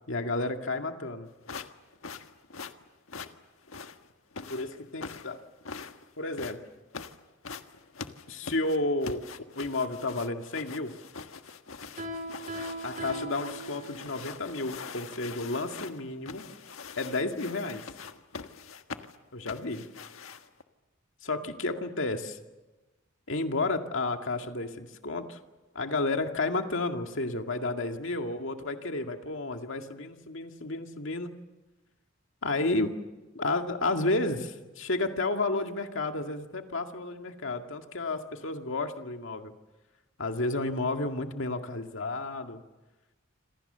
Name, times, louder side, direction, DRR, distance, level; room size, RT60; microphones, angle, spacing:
voice 1, 0.1-1.3 4.5-5.4 6.2-6.6 8.3-9.3 9.6-10.9 12.8-16.5 17.0-17.8 19.3-19.8 21.2-22.4 23.3-25.4 25.7-31.4 32.4-33.0 33.3-39.5 40.2-42.6, left 2 dB, 65° left, 5 dB, 2.2 m, -31 dB
sound 1, 1.4-20.6, left 5 dB, 85° left, 1.5 m, -43 dB
Piano, 12.0-14.3, right 1 dB, 40° right, 4.2 m, -39 dB
27.5 x 27.0 x 6.9 m, 1.1 s
head